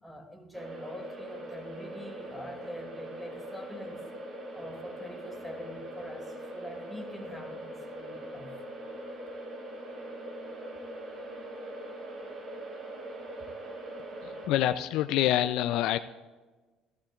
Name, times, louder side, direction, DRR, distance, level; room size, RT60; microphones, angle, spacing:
voice 1, 0.0-4.0 4.5-8.6, equal, ahead, 2 dB, 2.6 m, -45 dB
sound 1, 0.5-14.5, right 1 dB, 50° right, 2.4 m, -42 dB
voice 2, 14.2-16.0, left 12 dB, 70° left, 11 dB, 0.4 m, -26 dB
16.0 x 13.0 x 2.5 m, 1.3 s
hypercardioid pair, 65°, 0 cm